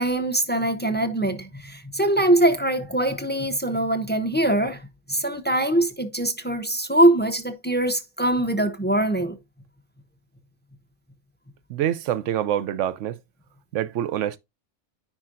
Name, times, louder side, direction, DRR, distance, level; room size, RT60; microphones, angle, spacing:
voice 1, 0.0-9.4, right 1 dB, 15° left, 0.4 m, -22 dB
voice 2, 11.7-13.2 13.7-14.4, right 11 dB, 75° right, 0.9 m, -26 dB
10.0 x 4.4 x 2.5 m
omnidirectional pair, 1.3 m